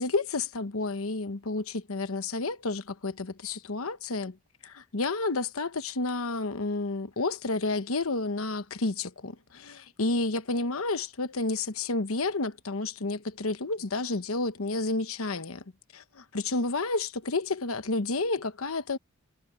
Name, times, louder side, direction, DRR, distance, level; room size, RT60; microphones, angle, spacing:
voice 1, 0.0-4.4 4.6-15.6 15.9-19.0, left 3 dB, 80° left, 1.1 m, -30 dB
head